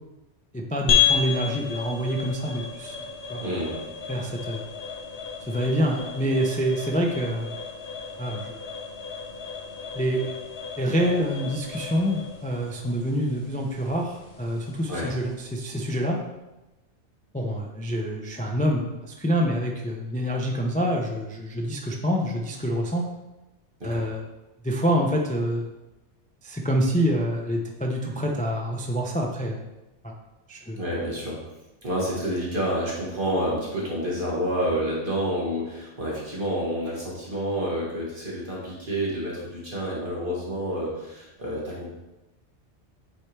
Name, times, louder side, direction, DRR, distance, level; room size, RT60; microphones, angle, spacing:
voice 1, 0.5-3.0 3.3-3.5 4.1-4.6 5.5-7.5 8.2-8.6 9.9-10.2 10.8-16.2 17.3-23.0 23.8-24.2 24.6-25.7 26.4-29.6 30.0-30.1 30.5-30.8, equal, 10° left, 0 dB, 0.4 m, -26 dB
sound 1, 0.9-15.5, left 7 dB, 60° left, 1.1 m, -32 dB
voice 2, 3.4-3.8 14.9-15.1 23.8-24.0 30.8-31.4 31.8-41.9, equal, 45° right, -5 dB, 1.7 m, -29 dB
8.3 x 4.4 x 3.3 m, 1.0 s
omnidirectional pair, 1.2 m